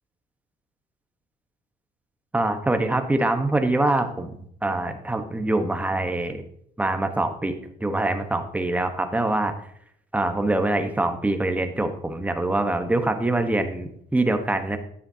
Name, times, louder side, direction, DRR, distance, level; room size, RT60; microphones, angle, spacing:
voice 1, 2.3-6.4 6.8-9.5 10.1-14.8, right 2 dB, 10° right, 7 dB, 1.1 m, -24 dB
10.5 x 9.1 x 2.8 m, 0.68 s
cardioid pair, 110°, 17 cm